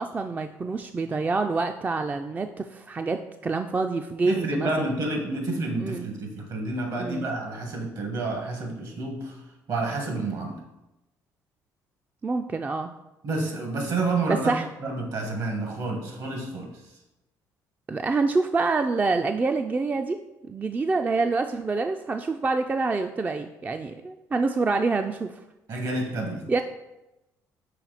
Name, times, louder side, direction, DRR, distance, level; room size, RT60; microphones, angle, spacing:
voice 1, 0.0-4.9 5.8-6.1 7.0-7.3 12.2-12.9 14.3-14.7 17.9-20.2 20.5-25.4 26.5-26.6, right 3 dB, 25° right, 6 dB, 0.3 m, -26 dB
voice 2, 4.3-9.4 9.7-10.6 13.2-14.5 14.8-16.7 25.7-26.4, right 2 dB, 60° right, 2 dB, 1.7 m, -29 dB
5.7 x 4.2 x 4.0 m, 0.96 s
supercardioid pair, 80°, 7 cm